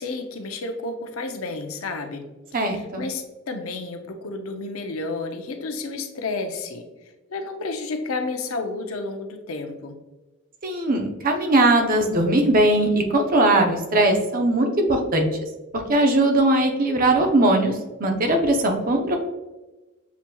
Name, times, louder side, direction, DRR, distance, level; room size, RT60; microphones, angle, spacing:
voice 1, 0.0-10.0, left 3 dB, 80° left, 5 dB, 0.6 m, -31 dB
voice 2, 2.5-3.0 10.6-15.3 15.9-17.7 18.0-19.2, right 1 dB, 45° right, 3 dB, 0.7 m, -20 dB
6.9 x 2.9 x 2.2 m, 1.1 s
head